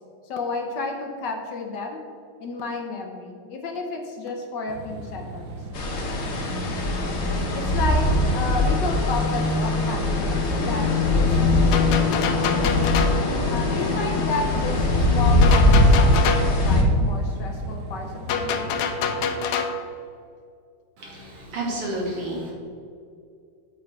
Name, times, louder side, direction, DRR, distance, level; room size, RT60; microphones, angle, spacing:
voice 1, 0.2-2.0 2.4-5.5 7.5-8.1 8.3-12.2 13.5-18.8, left 3 dB, 65° left, 3 dB, 1.3 m, -32 dB
sound 1, 4.7-19.3, right 2 dB, 70° right, 1.5 m, -38 dB
sound 2, 5.7-16.8, left 2 dB, 50° left, 0.8 m, -21 dB
sound 3, 11.7-13.3 15.4-16.6 18.3-19.8, left 5 dB, 90° left, 1.6 m, -26 dB
voice 2, 21.0-22.5, right 1 dB, 85° right, -3 dB, 2.9 m, -30 dB
8.7 x 7.1 x 3.3 m, 2.3 s
omnidirectional pair, 2.4 m